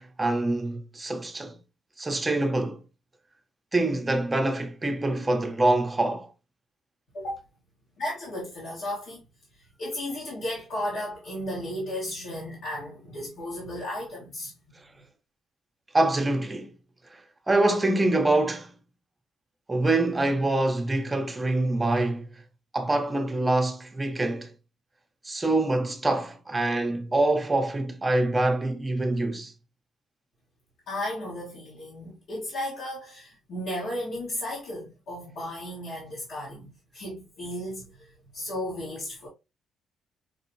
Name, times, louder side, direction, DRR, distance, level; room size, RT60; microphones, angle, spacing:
voice 1, 0.0-1.6 2.0-2.8 3.7-6.3 15.9-16.7 17.1-17.2 17.5-18.8 19.7-22.3 22.7-24.5 25.2-29.5, right 2 dB, 20° right, 0.7 m, -25 dB
voice 2, 8.0-9.3 9.8-14.5 30.9-39.3, left 1 dB, 75° left, 1.4 m, -34 dB
5.3 x 2.0 x 2.7 m
cardioid pair, 90°, 0 cm